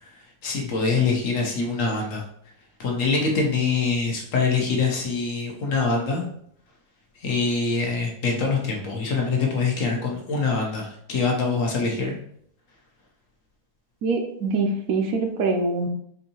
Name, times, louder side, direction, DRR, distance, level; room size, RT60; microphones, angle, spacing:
voice 1, 0.4-2.2 2.8-6.2 7.2-12.1, left 4 dB, 60° left, -1 dB, 1.1 m, -24 dB
voice 2, 14.0-15.9, right 3 dB, 70° right, 3 dB, 1.0 m, -24 dB
4.5 x 2.6 x 2.8 m, 0.68 s
omnidirectional pair, 1.6 m